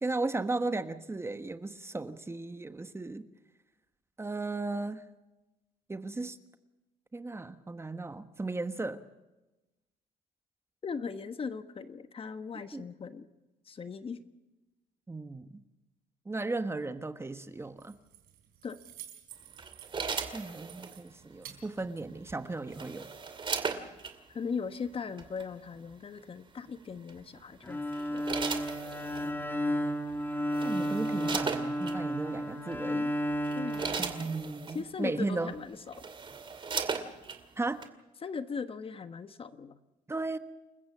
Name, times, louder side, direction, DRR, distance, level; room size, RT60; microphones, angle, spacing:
voice 1, 0.0-3.3 4.2-5.0 5.9-6.4 7.1-9.0 12.7-12.8 15.1-15.6 16.2-17.9 20.3-23.1 30.6-33.1 34.0-35.5 37.6-37.8 40.1-40.4, right 3 dB, 15° right, 10 dB, 1.2 m, -35 dB
voice 2, 10.8-13.3 13.7-14.2 18.6-18.8 24.3-27.8 28.1-28.3 33.5-34.0 34.7-36.0 38.2-39.8, left 5 dB, 40° left, 11 dB, 1.3 m, -38 dB
Keys jangling, 17.5-22.6, right 11 dB, 85° right, 4.0 m, -53 dB
sound 1, 19.6-21.0 22.3-24.1 25.2-25.4 27.1-27.4 27.9-29.3 30.1-30.2 30.5-32.0 32.7-32.9 33.3-34.8 35.5-35.6 35.9-37.4 37.8-37.9, right 5 dB, 35° right, 2.5 m, -37 dB
Bowed string instrument, 27.6-34.8, equal, 15° left, 2.1 m, -33 dB
28.5 x 15.0 x 7.4 m, 1.0 s
cardioid pair, 95°, 15 cm